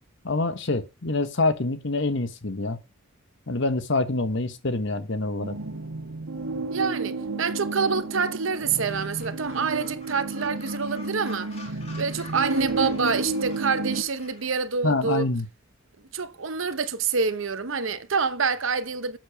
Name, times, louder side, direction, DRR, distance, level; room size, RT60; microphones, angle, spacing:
voice 1, 0.2-2.8 3.5-5.6 14.8-15.5, left 2 dB, 60° left, 1.1 m, -26 dB
sound 1, 5.4-14.0, right 3 dB, 90° right, 1.4 m, -32 dB
voice 2, 6.7-11.5 12.0-15.3 16.1-19.2, right 5 dB, 65° right, 0.9 m, -27 dB
Gull seagull, 8.8-14.6, left 3 dB, 30° left, 2.2 m, -48 dB
7.6 x 7.0 x 4.9 m
head